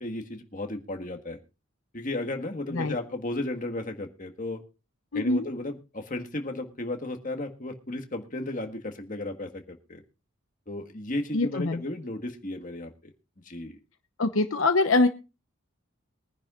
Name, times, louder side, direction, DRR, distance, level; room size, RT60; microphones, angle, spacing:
voice 1, 0.0-1.4 1.9-4.6 5.1-10.0 10.7-13.1 13.4-13.8, left 2 dB, 40° left, 4 dB, 1.7 m, -34 dB
voice 2, 5.1-5.5 11.3-11.8 14.2-15.1, left 2 dB, 70° left, 8 dB, 1.0 m, -23 dB
22.5 x 10.5 x 2.5 m, 0.30 s
head